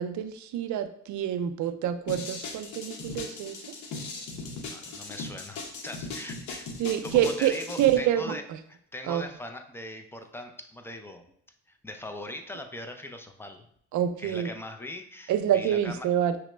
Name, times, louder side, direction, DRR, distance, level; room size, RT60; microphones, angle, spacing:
voice 1, 0.0-3.6 6.8-8.4 9.0-9.3 13.9-14.5 15.3-16.4, right 10 dB, 70° right, 10 dB, 0.5 m, -27 dB
skipping rocks.R, 2.1-8.0, left 3 dB, 75° left, 0.8 m, -38 dB
voice 2, 4.7-6.7 7.0-8.4 8.7-11.2 11.7-13.7 14.2-16.1, left 1 dB, 10° left, 6 dB, 0.4 m, -40 dB
5.8 x 2.1 x 3.1 m, 0.68 s
cardioid pair, 90°, 30 cm